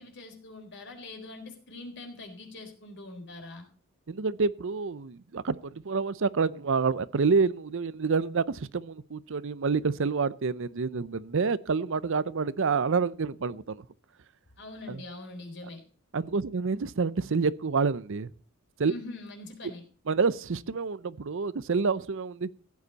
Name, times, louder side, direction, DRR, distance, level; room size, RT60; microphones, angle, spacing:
voice 1, 0.0-3.7 14.6-15.8 18.8-19.8, left 2 dB, 60° left, 3.9 m, -43 dB
voice 2, 4.1-13.8 14.9-15.0 16.1-18.3 18.8-18.9 20.1-22.5, right 4 dB, 65° right, 0.6 m, -28 dB
15.5 x 9.5 x 4.1 m
head